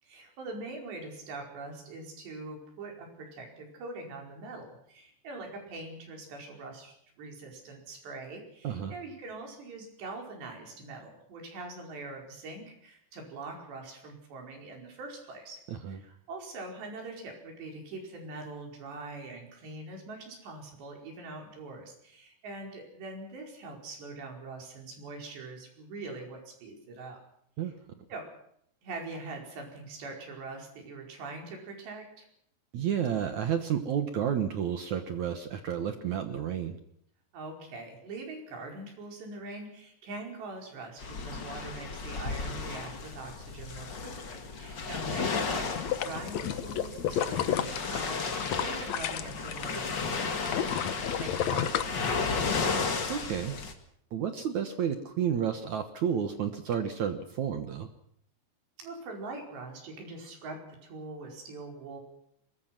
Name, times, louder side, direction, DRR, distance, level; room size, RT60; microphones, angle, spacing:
voice 1, 0.0-15.6 15.9-27.2 28.1-28.2 28.8-32.3 37.3-52.8 58.8-62.0, right 2 dB, 85° right, 2 dB, 7.1 m, -43 dB
voice 2, 15.7-16.0 27.6-27.7 32.7-36.8 53.1-53.6 54.1-57.9, right 8 dB, 65° right, 8 dB, 2.0 m, -31 dB
sound 1, 41.0-53.7, left 4 dB, 40° left, 1.8 m, -34 dB
sound 2, 45.6-49.8 50.1-52.6 53.0-53.1, left 10 dB, 75° left, 1.6 m, -32 dB
24.0 x 21.5 x 6.0 m, 0.71 s
omnidirectional pair, 4.8 m